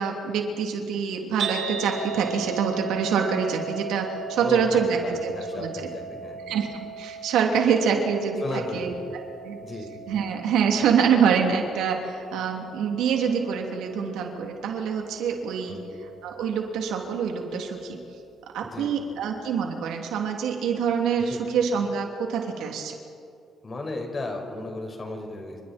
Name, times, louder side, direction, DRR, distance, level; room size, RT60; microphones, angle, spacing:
voice 1, 0.0-5.9 6.5-8.4 8.7-9.6 10.1-15.8 16.2-18.0 18.5-22.9, right 6 dB, 85° right, 2 dB, 3.0 m, -25 dB
sound 1, 1.4-17.6, right 5 dB, 70° right, 7.3 m, -38 dB
voice 2, 4.4-6.4 8.4-8.9 9.6-9.9 15.7-15.9 18.6-18.9 21.3-21.4 23.6-25.6, left 2 dB, 35° left, 2 dB, 5.3 m, -34 dB
29.5 x 26.5 x 4.5 m, 2.5 s
cardioid pair, 90°, 0 cm